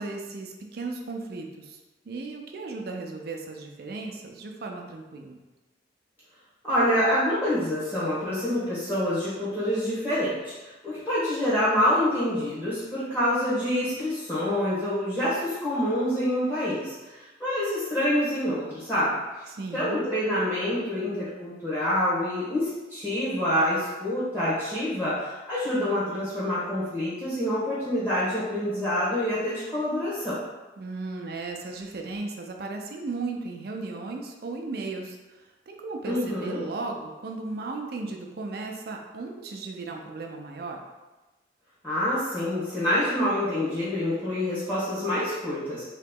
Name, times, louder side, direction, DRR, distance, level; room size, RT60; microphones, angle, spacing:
voice 1, 0.0-1.8 2.1-5.4 19.5-20.0 30.8-35.2 35.7-40.8, right 3 dB, 55° right, 2 dB, 0.4 m, -35 dB
voice 2, 6.6-10.5 10.8-16.9 17.4-19.1 19.7-30.4 36.0-36.6 41.8-45.9, left 1 dB, 10° left, -11 dB, 1.0 m, -26 dB
3.1 x 2.9 x 3.6 m, 1.1 s
head